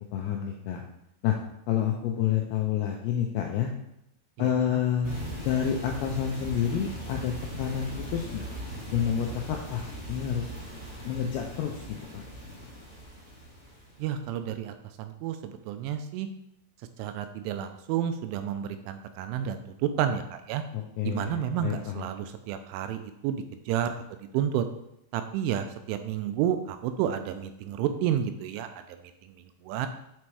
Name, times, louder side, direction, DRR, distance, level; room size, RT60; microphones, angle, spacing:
voice 1, 0.1-0.8 1.2-1.4 1.7-3.7 4.4-8.4 8.9-10.5 11.1-12.2 20.7-22.1, left 9 dB, 85° left, 1 dB, 2.5 m, -29 dB
voice 2, 4.4-4.8 14.0-16.3 17.0-20.6 21.0-24.7 25.1-29.9, right 9 dB, 85° right, 8 dB, 2.9 m, -31 dB
sound 1, 5.0-14.1, right 1 dB, 15° left, 0.7 m, -39 dB
8.6 x 4.4 x 4.7 m, 0.81 s
omnidirectional pair, 5.7 m